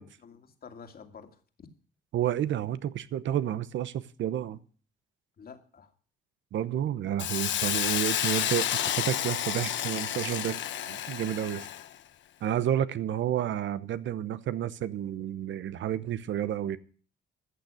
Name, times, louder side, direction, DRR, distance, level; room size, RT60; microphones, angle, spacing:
voice 1, 0.0-1.7 5.4-5.9, left 6 dB, 50° left, 2.4 m, -50 dB
voice 2, 2.1-4.6 6.5-10.6 10.9-11.7 12.4-16.8, right 11 dB, 70° right, 0.9 m, -30 dB
Hiss, 7.2-11.9, left 11 dB, 70° left, 1.0 m, -30 dB
14.5 x 6.7 x 8.5 m
cardioid pair, 90°, 20 cm